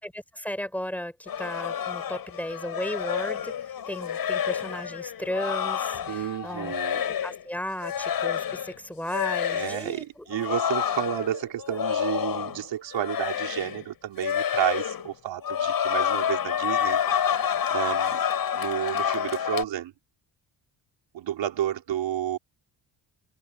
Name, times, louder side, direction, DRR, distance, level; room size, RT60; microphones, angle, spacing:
voice 1, 0.0-6.7 7.0-10.3 11.7-11.8, equal, 5° left, 5.5 m, -35 dB
sound 1, 1.3-7.4 7.8-8.8 9.1-9.8 10.3-12.7 12.9-13.8 14.2-15.1 15.4-19.6, left 9 dB, 50° left, 7.5 m, -28 dB
voice 2, 6.1-7.0 9.5-18.2 18.5-19.9 21.1-22.4, right 11 dB, 75° right, 3.8 m, -31 dB
open air
cardioid pair, 155°, 44 cm